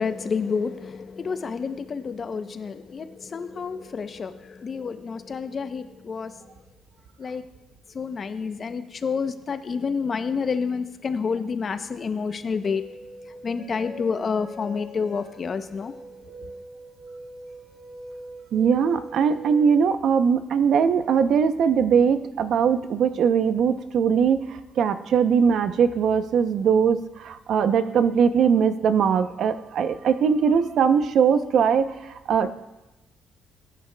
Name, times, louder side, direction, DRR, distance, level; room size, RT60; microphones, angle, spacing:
voice 1, 0.0-6.5 7.2-7.4 7.9-12.8 13.3-15.9 16.3-16.5, left 5 dB, 40° left, 10 dB, 0.6 m, -29 dB
sound 1, 12.6-19.8, equal, 20° right, 3.2 m, -42 dB
voice 2, 18.5-32.5, right 7 dB, 65° right, 11 dB, 0.6 m, -21 dB
19.5 x 9.1 x 2.2 m, 1.0 s
cardioid pair, 120°, 0 cm